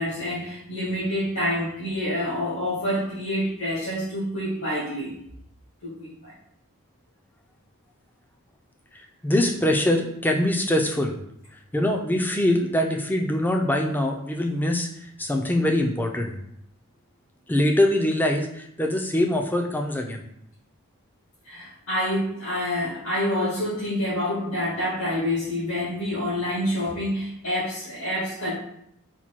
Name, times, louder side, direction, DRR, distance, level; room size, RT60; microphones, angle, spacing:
voice 1, 0.0-5.1 5.8-6.3 21.4-28.5, left 1 dB, 75° left, -8 dB, 1.5 m, -27 dB
voice 2, 9.2-11.2 11.7-14.9 15.2-16.3 17.5-20.2, left 1 dB, 10° left, 2 dB, 0.4 m, -23 dB
4.3 x 2.2 x 4.3 m, 0.71 s
head